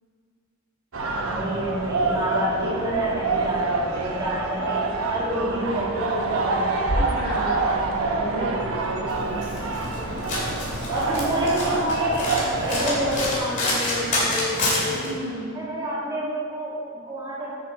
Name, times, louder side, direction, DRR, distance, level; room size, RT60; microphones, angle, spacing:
sound 1, 0.9-13.4, right 3 dB, 70° right, 1.0 m, -26 dB
voice 1, 1.1-7.2 10.9-15.1 15.5-17.5, equal, 15° right, -8 dB, 2.3 m, -29 dB
voice 2, 7.0-8.6 14.9-15.6, equal, 45° right, -7 dB, 1.9 m, -32 dB
Domestic sounds home sounds, 9.1-15.1, left 1 dB, 35° left, 2.3 m, -28 dB
9.2 x 6.7 x 4.5 m, 2.1 s
head